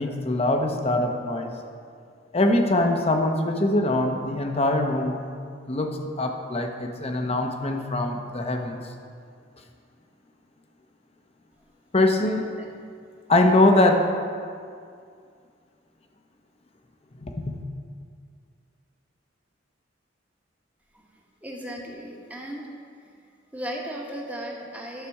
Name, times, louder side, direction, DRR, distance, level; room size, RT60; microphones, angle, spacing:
voice 1, 0.0-1.5 2.3-5.2 5.7-8.8 11.9-12.5 13.3-14.0 17.2-17.6, left 2 dB, 35° left, 4 dB, 0.9 m, -23 dB
voice 2, 21.4-22.7 23.5-25.1, equal, 10° right, -2 dB, 1.4 m, -36 dB
11.5 x 6.8 x 4.7 m, 2.3 s
head